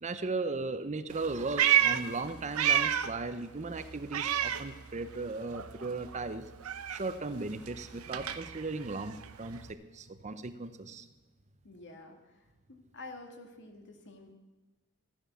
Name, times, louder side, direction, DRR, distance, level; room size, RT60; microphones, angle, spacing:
voice 1, 0.0-6.5 6.9-11.1, right 3 dB, 30° right, 11 dB, 0.7 m, -37 dB
Meow, 1.1-3.3 3.6-5.3 5.5-9.7, right 10 dB, 80° right, 0.8 m, -31 dB
voice 2, 11.6-14.3, left 2 dB, 55° left, 4 dB, 2.0 m, -49 dB
14.5 x 10.5 x 7.0 m, 1.2 s
head